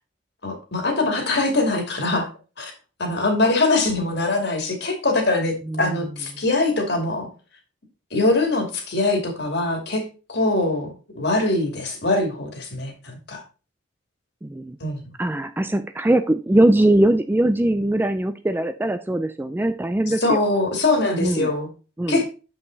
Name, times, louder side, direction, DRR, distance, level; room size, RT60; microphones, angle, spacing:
voice 1, 0.4-2.3 2.6-2.7 3.0-7.3 8.1-10.0 10.3-13.4 14.8-15.0 20.2-21.7 22.1-22.2, left 2 dB, 55° left, 4 dB, 2.3 m, -22 dB
voice 2, 5.6-6.0 14.4-14.8 15.2-20.4 21.2-21.5 22.0-22.2, right 1 dB, 10° right, 10 dB, 0.4 m, -21 dB
7.5 x 5.6 x 3.9 m, 0.33 s
head